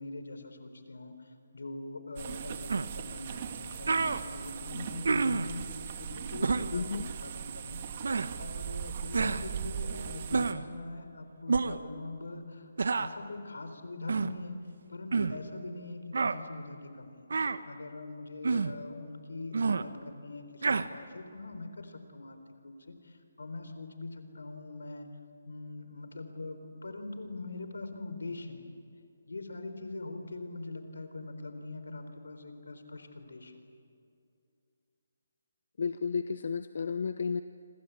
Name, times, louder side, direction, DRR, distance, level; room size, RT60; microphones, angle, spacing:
voice 1, 0.0-7.8 8.4-14.6 14.9-17.3 17.6-25.1 25.5-28.7 29.3-33.7, left 2 dB, 90° left, 8 dB, 4.1 m, -42 dB
sound 1, 2.2-10.5, right 8 dB, 40° right, 1.9 m, -39 dB
sound 2, 2.7-2.9 3.5-3.6 3.9-4.2 5.0-5.5 6.4-6.7 8.0-8.3 9.1-9.4 10.3-10.6 11.5-11.8 12.8-13.1 14.1-14.3 15.1-15.4 16.1-16.4 17.3-17.6 18.4-18.7 19.5-19.8 20.6-20.8, right 4 dB, 75° right, 1.3 m, -28 dB
voice 2, 6.7-7.1 35.8-37.4, left 5 dB, 60° left, 11 dB, 0.9 m, -32 dB
26.5 x 26.0 x 8.4 m, 2.5 s
hypercardioid pair, 160°, 0 cm